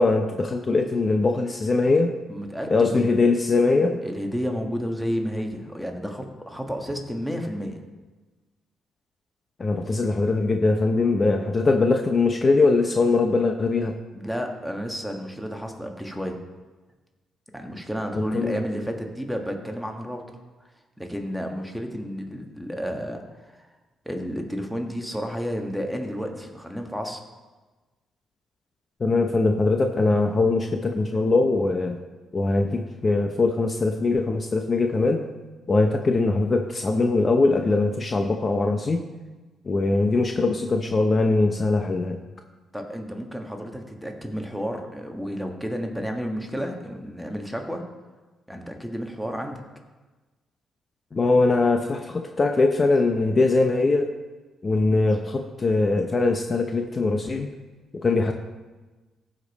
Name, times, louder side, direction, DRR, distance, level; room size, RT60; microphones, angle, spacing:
voice 1, 0.0-2.1 2.7-4.0 9.6-13.9 18.3-18.6 29.0-32.0 32.3-35.2 35.7-39.0 39.6-42.2 51.1-54.1 54.6-57.5 57.9-58.3, left 3 dB, 35° left, 4 dB, 0.7 m, -21 dB
voice 2, 2.3-3.1 4.0-7.8 14.1-16.4 17.5-20.2 21.0-23.7 24.0-27.2 42.7-47.8 48.5-49.6, equal, ahead, 2 dB, 1.4 m, -31 dB
15.0 x 5.2 x 4.1 m, 1.2 s
cardioid pair, 90°, 0 cm